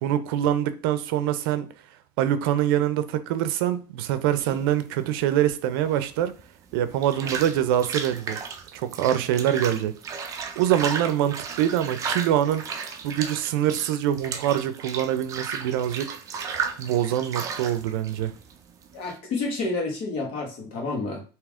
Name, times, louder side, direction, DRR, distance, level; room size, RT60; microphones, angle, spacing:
voice 1, 0.0-1.7 2.2-6.3 6.7-8.4 8.7-9.9 10.6-12.6 13.0-16.2 16.8-18.3, right 11 dB, 85° right, 0.5 m, -24 dB
sound 1, 4.4-19.2, right 6 dB, 30° right, 0.5 m, -35 dB
voice 2, 18.9-21.2, left 3 dB, 50° left, 1.4 m, -29 dB
3.4 x 2.9 x 3.6 m
cardioid pair, 155°, 12 cm